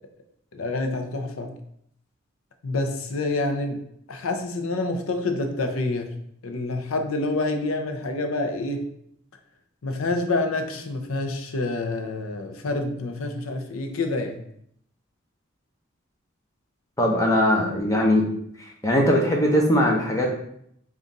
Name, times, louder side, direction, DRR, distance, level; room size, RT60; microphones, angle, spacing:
voice 1, 0.5-1.6 2.6-3.8 4.1-6.1 6.4-8.9 9.8-14.4, left 2 dB, 80° left, 5 dB, 0.6 m, -27 dB
voice 2, 17.0-18.2 18.8-20.3, equal, 15° left, -1 dB, 0.7 m, -20 dB
3.7 x 2.5 x 4.0 m, 0.69 s
head